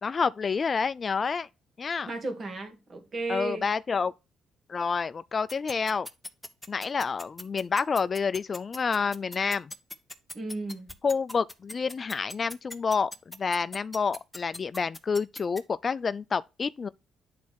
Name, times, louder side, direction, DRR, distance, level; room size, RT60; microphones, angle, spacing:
voice 1, 0.0-1.5 1.8-2.1 3.3-4.1 4.7-6.1 6.7-9.7 11.0-16.9, left 5 dB, 40° left, 0.3 m, -28 dB
voice 2, 2.0-3.7 10.3-10.9, right 2 dB, 40° right, 2.1 m, -34 dB
sound 1, 5.5-15.6, left 2 dB, 10° left, 1.0 m, -39 dB
9.5 x 4.1 x 4.6 m
cardioid pair, 90°, 0 cm